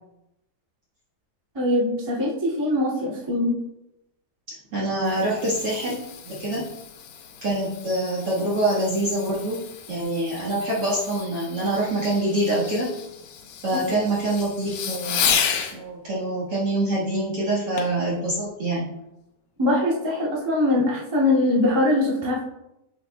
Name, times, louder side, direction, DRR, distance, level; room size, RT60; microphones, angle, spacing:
voice 1, 1.5-3.6 13.7-13.8 19.6-22.4, left 1 dB, 15° right, -7 dB, 0.9 m, -22 dB
voice 2, 4.7-6.7 7.4-9.6 9.9-12.9 13.6-15.4 15.7-18.9, right 1 dB, 55° right, -5 dB, 1.7 m, -25 dB
Fireworks, 4.8-15.8 17.8-18.0 18.6-18.7, left 8 dB, 85° left, 2.9 m, -32 dB
9.5 x 7.1 x 2.3 m, 0.88 s
omnidirectional pair, 4.6 m